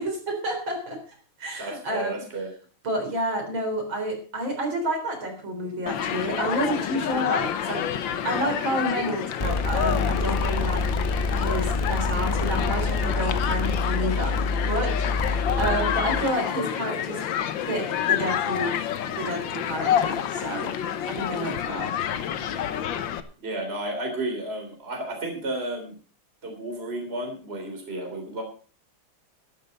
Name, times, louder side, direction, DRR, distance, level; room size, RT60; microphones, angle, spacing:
voice 1, 0.0-2.2 2.8-7.9 8.2-10.9 11.3-17.3 17.6-18.8 19.0-20.7 21.1-21.9, right 1 dB, 65° right, 3 dB, 4.6 m, -30 dB
voice 2, 1.6-2.5 23.4-25.9 26.4-28.4, right 2 dB, 25° right, 2 dB, 3.5 m, -32 dB
Human group actions, 5.9-23.2, left 9 dB, 65° left, 1.6 m, -28 dB
sound 1, 9.4-16.2, left 3 dB, 25° left, 0.6 m, -26 dB
12.5 x 11.5 x 5.3 m, 0.38 s
omnidirectional pair, 2.4 m